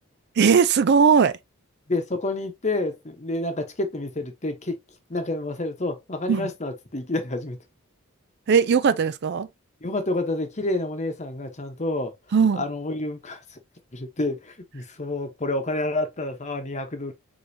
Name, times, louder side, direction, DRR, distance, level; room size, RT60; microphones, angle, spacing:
voice 1, 0.4-1.4 6.3-6.5 8.5-9.5 12.3-12.6, right 6 dB, 50° right, 0.4 m, -18 dB
voice 2, 1.9-4.8 5.1-7.6 9.8-12.1 12.6-13.4 13.9-17.1, left 2 dB, 30° left, 1.0 m, -29 dB
5.1 x 3.8 x 2.7 m
head